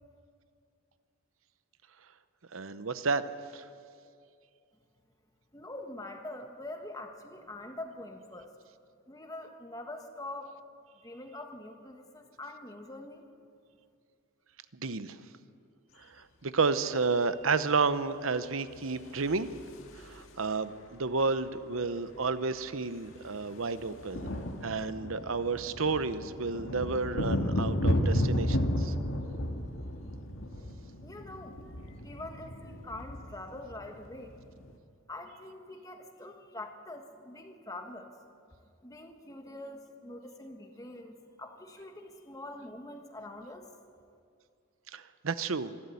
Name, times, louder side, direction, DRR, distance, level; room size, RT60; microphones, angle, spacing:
voice 1, 2.5-3.2 3.5-3.6 14.7-15.2 16.0-19.5 19.9-24.3 24.6-28.9 44.9-45.7, right 4 dB, 85° right, 13 dB, 0.9 m, -31 dB
voice 2, 5.5-8.5 9.1-10.6 11.0-13.2 31.0-31.6 32.0-34.3 35.1-38.1 38.8-43.7, left 2 dB, 15° left, 4 dB, 1.5 m, -44 dB
sound 1, 18.9-20.5 21.8-21.9 22.1-22.3 22.6-34.7, equal, 80° left, 1.8 m, -33 dB
25.5 x 12.0 x 8.4 m, 2.4 s
head